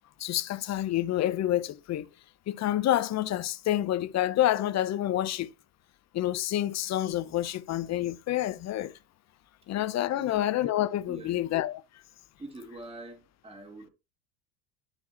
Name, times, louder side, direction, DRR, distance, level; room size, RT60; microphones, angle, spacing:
voice 1, 0.2-2.1 2.5-5.5 6.1-8.9 9.7-11.8, left 13 dB, 35° left, 0.8 m, -28 dB
voice 2, 11.1-11.4 12.4-13.9, right 2 dB, 10° right, 2.4 m, -44 dB
12.5 x 4.7 x 2.9 m
supercardioid pair, 115°, 48 cm